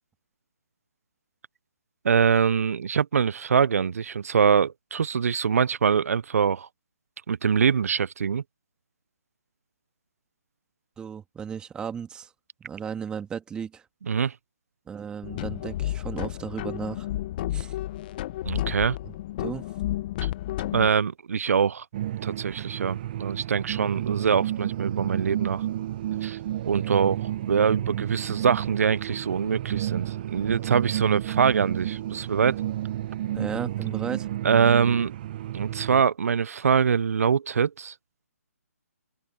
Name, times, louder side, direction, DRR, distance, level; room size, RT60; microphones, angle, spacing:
voice 1, 2.0-6.7 7.3-8.4 14.1-14.3 18.4-19.0 20.2-20.3 20.7-21.8 22.2-25.6 26.2-26.4 26.6-32.6 34.4-35.1 35.5-37.9, right 6 dB, 65° right, 0.6 m, -24 dB
voice 2, 11.0-12.3 12.6-13.8 14.9-17.1 17.5-17.8 19.0-19.1 19.4-19.7 33.3-34.3, right 7 dB, 10° right, 2.3 m, -35 dB
sound 1, 15.2-20.9, left 14 dB, 35° left, 1.0 m, -31 dB
sound 2, 21.9-36.0, right 13 dB, 35° right, 0.9 m, -31 dB
hypercardioid pair, 145°, 9 cm